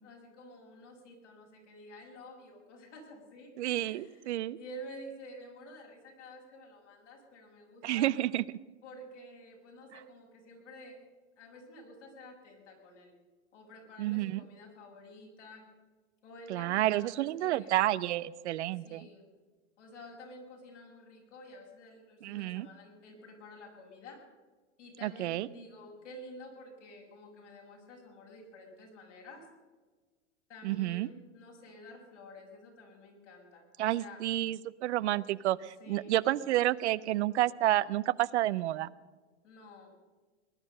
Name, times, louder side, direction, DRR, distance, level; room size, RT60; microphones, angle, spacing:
voice 1, 0.0-3.5 3.8-8.1 8.8-11.0 11.4-13.1 13.5-15.6 16.2-17.7 18.8-19.2 19.8-24.2 24.8-29.5 30.5-34.2 35.8-36.3 39.4-39.9, left 1 dB, 85° left, -1 dB, 6.5 m, -50 dB
voice 2, 3.6-4.6 7.8-8.4 9.9-10.0 14.0-14.4 16.5-19.1 22.2-22.7 25.0-25.5 30.6-31.1 33.8-38.9, right 14 dB, 70° right, 18 dB, 0.7 m, -30 dB
19.5 x 11.0 x 6.6 m, 1.4 s
hypercardioid pair, 110°, 35 cm